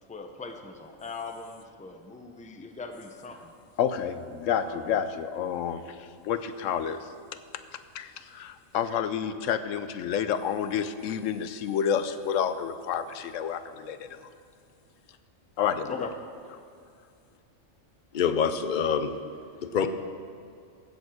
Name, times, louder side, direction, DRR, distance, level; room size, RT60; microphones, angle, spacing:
voice 1, 0.1-3.5 4.6-5.0 15.9-16.1 16.4-16.6 19.7-19.9, left 3 dB, 5° left, 5 dB, 0.6 m, -40 dB
voice 2, 3.8-7.0 7.9-14.3 15.6-16.1, left 8 dB, 80° left, 11 dB, 1.0 m, -29 dB
voice 3, 18.1-19.2 19.6-19.9, left 7 dB, 50° left, 9 dB, 0.7 m, -25 dB
16.0 x 7.2 x 6.3 m, 2.4 s
omnidirectional pair, 1.3 m